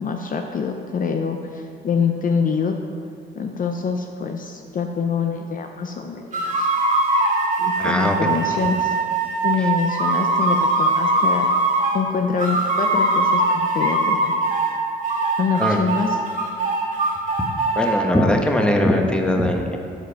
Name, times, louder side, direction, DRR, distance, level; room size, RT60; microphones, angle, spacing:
voice 1, 0.0-2.8 3.3-6.7 7.6-8.9 9.4-11.5 11.9-14.3 15.4-16.2, left 5 dB, 45° left, 5 dB, 0.6 m, -25 dB
sound 1, 6.3-12.0 12.4-14.7 15.0-17.9, right 2 dB, 40° right, 2.2 m, -21 dB
voice 2, 7.8-8.2 15.6-15.8 17.8-19.8, left 1 dB, 5° left, 2 dB, 1.0 m, -20 dB
12.5 x 4.9 x 4.5 m, 2.6 s
cardioid pair, 90°, 20 cm